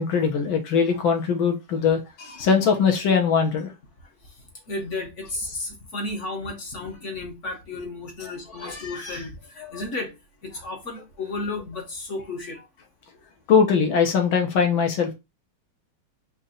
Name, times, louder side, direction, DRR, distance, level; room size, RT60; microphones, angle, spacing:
voice 1, 0.0-3.7 8.2-8.3 8.6-8.8 9.6-9.8 13.5-15.1, left 6 dB, 75° left, 1.8 m, -21 dB
voice 2, 4.7-10.1 10.4-12.6, left 2 dB, 45° left, 1.2 m, -33 dB
4.4 x 2.9 x 3.8 m
omnidirectional pair, 2.3 m